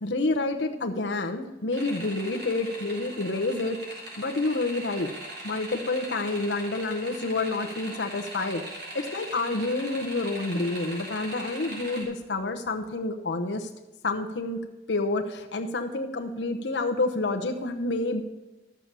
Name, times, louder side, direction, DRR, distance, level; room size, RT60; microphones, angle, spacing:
voice 1, 0.0-3.8 4.2-5.1 5.4-8.6 8.9-13.7 14.0-14.6 14.9-18.2, left 2 dB, 90° left, 3 dB, 0.9 m, -28 dB
sound 1, 1.7-12.0, right 1 dB, 65° right, 3.7 m, -40 dB
12.5 x 6.9 x 7.4 m, 1.1 s
head